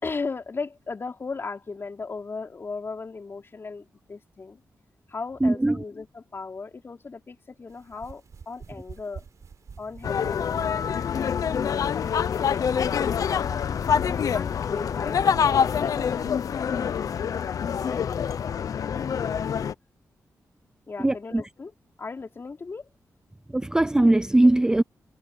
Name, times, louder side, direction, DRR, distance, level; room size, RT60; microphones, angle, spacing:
voice 1, 0.0-4.6 5.1-9.2 9.8-13.6 14.0-16.0 17.8-18.1 20.9-21.7 22.0-22.9, left 4 dB, 40° left, 4.7 m, -37 dB
voice 2, 5.4-5.8 21.0-21.4 23.5-24.8, right 1 dB, 10° right, 0.3 m, -20 dB
sound 1, 7.7-16.4, right 6 dB, 55° right, 5.8 m, -48 dB
sound 2, 10.0-19.7, left 7 dB, 70° left, 0.8 m, -26 dB
wide cardioid pair, 100°, 6 cm